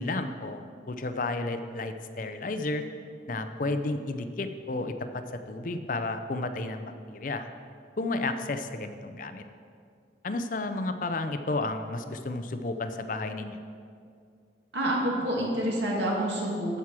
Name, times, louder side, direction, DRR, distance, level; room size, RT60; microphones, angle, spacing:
voice 1, 0.0-2.8 3.3-7.5 8.0-9.4 10.2-13.6, left 2 dB, 50° left, 8 dB, 0.5 m, -32 dB
voice 2, 14.7-16.8, right 1 dB, 90° right, -3 dB, 2.2 m, -28 dB
13.0 x 4.8 x 6.0 m, 2.3 s
head